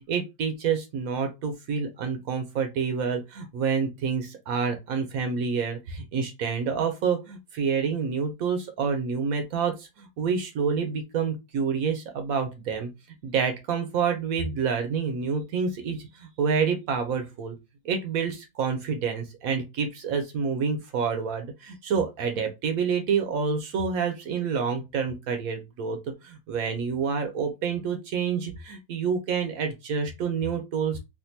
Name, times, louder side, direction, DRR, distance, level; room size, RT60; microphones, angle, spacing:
voice 1, 0.1-12.9 13.2-17.5 17.8-26.0 26.2-31.0, right 6 dB, 65° right, 1.0 m, -28 dB
3.5 x 2.5 x 2.7 m
omnidirectional pair, 1.7 m